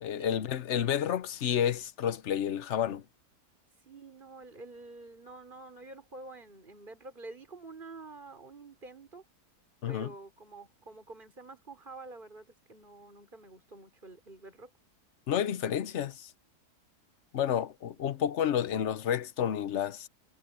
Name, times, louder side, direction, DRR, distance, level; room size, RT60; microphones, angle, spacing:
voice 1, 0.0-3.0 9.8-10.1 15.3-16.3 17.3-20.1, left 9 dB, 55° left, 1.0 m, -30 dB
voice 2, 3.8-9.2 9.9-14.7, right 3 dB, 30° right, 4.9 m, -48 dB
omnidirectional pair, 1.7 m